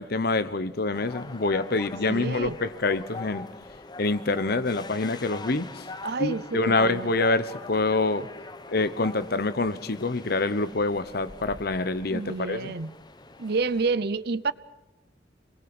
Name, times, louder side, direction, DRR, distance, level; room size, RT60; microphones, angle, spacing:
voice 1, 0.0-3.5 4.0-5.8 6.2-8.3 8.7-12.7, left 3 dB, 60° left, 1.0 m, -26 dB
sound 1, 0.9-13.9, left 3 dB, 25° left, 0.9 m, -43 dB
voice 2, 2.1-2.6 6.0-7.1 12.1-12.9 13.4-14.5, right 4 dB, 60° right, 0.7 m, -29 dB
27.0 x 21.0 x 6.2 m
head